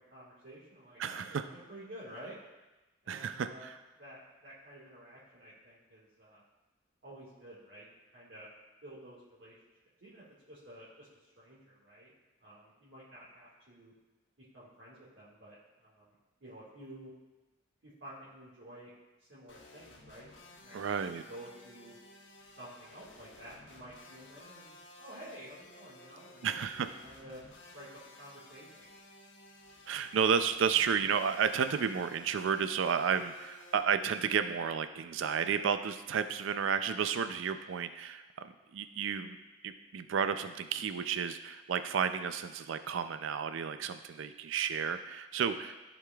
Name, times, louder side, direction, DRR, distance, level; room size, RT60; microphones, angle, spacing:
voice 1, 0.1-2.4 3.0-3.7 3.9-6.4 7.0-7.9 8.1-8.5 8.8-9.6 10.0-12.1 12.4-13.9 14.4-16.2 16.4-17.1 17.8-18.9 19.2-20.3 20.6-22.0 22.5-26.5 27.0-27.9 28.2-28.9, right 1 dB, 60° right, -9 dB, 1.8 m, -51 dB
voice 2, 1.0-1.5 3.1-3.8 20.7-21.2 26.4-26.9 29.9-38.2 38.7-39.4 39.6-45.8, right 7 dB, 80° right, 10 dB, 0.4 m, -32 dB
sound 1, 19.5-33.8, left 2 dB, 65° left, 1.0 m, -55 dB
14.5 x 4.9 x 2.3 m, 1.1 s
head